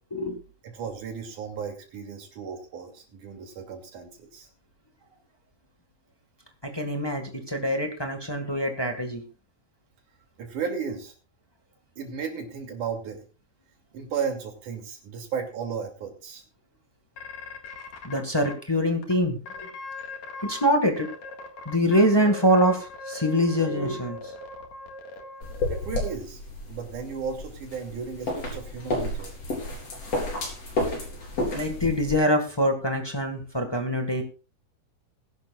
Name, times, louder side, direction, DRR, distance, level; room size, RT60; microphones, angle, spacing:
voice 1, 0.6-4.5 10.4-11.1 12.0-13.3 13.9-16.4 25.7-26.4 26.7-29.4, right 6 dB, 75° right, 2 dB, 4.1 m, -34 dB
voice 2, 6.6-9.2 18.0-19.7 20.4-21.1 21.6-24.3 31.5-34.2, equal, 20° left, 3 dB, 0.7 m, -24 dB
sound 1, 17.2-18.5 19.0-19.1 19.5-20.7 21.0-26.2, left 3 dB, 65° left, 3.2 m, -40 dB
sound 2, 25.4-32.1, left 1 dB, 50° left, 4.9 m, -31 dB
21.0 x 11.5 x 2.4 m, 0.35 s
omnidirectional pair, 3.6 m